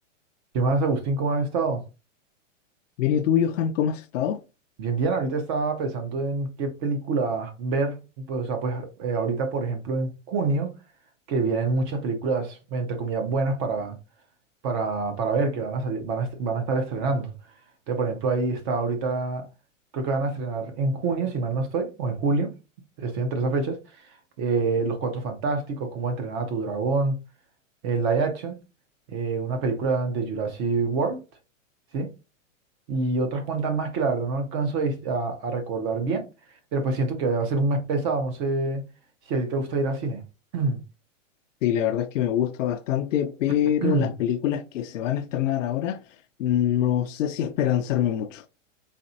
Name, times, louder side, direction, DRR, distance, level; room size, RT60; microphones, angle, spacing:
voice 1, 0.5-1.8 4.8-10.7 11.3-14.0 14.6-17.3 17.9-19.5 19.9-22.5 23.0-23.8 24.1-27.2 27.8-28.6 29.1-31.2 31.9-32.1 32.9-36.3 36.7-38.8 39.3-40.2 40.5-40.8 43.8-44.1, right 3 dB, 25° right, 0.5 m, -26 dB
voice 2, 3.0-4.4 41.6-46.0 46.4-48.4, left 10 dB, 75° left, 0.5 m, -24 dB
4.1 x 3.1 x 2.7 m
hypercardioid pair, 150°, 38 cm